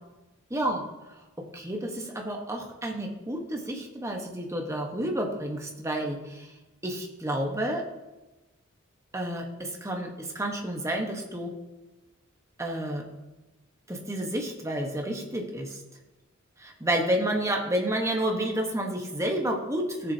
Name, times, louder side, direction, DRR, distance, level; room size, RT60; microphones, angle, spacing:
voice 1, 0.5-0.8 1.2-6.5 6.8-7.9 9.1-11.5 12.6-13.0 13.9-15.8 16.6-20.1, right 1 dB, 15° right, 1 dB, 1.2 m, -30 dB
14.5 x 7.0 x 2.8 m, 1.0 s
head